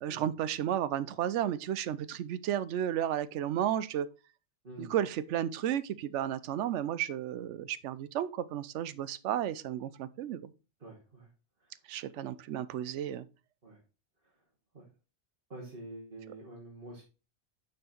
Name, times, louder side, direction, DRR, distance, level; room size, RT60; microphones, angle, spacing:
voice 1, 0.0-4.1 4.8-10.5 11.9-13.2, right 10 dB, 90° right, 0.9 m, -33 dB
voice 2, 4.6-5.0 10.8-11.3 11.6-11.7 13.6-13.8 14.2-14.3 14.7-14.9 15.5-17.0, right 1 dB, 50° right, 1.7 m, -47 dB
6.4 x 4.5 x 4.3 m
omnidirectional pair, 1.2 m